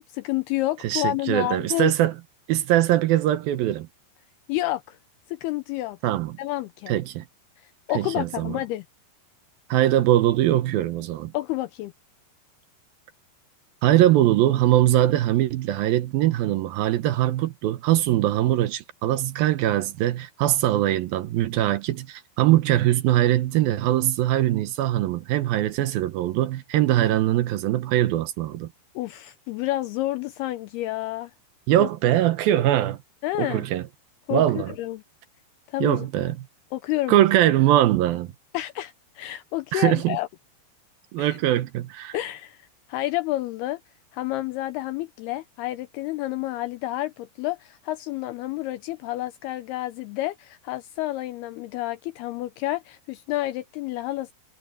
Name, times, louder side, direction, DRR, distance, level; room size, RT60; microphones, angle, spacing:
voice 1, 0.0-1.9 4.5-5.0 5.3-6.0 6.4-7.0 7.6-8.9 11.3-11.9 29.0-31.3 31.8-31.9 33.2-33.7 34.3-35.0 35.7-36.1 36.7-37.3 38.5-40.3 41.2-41.4 42.1-43.8 44.1-54.3, left 16 dB, 85° left, 2.3 m, -29 dB
voice 2, 0.8-2.1 2.5-3.9 6.0-6.4 6.9-7.3 7.9-8.6 9.7-11.3 13.8-28.7 31.7-33.0 33.4-33.8 34.3-34.7 35.8-36.5 37.1-38.3 39.7-40.2 41.1-42.2, right 13 dB, 75° right, 2.3 m, -22 dB
omnidirectional pair, 5.1 m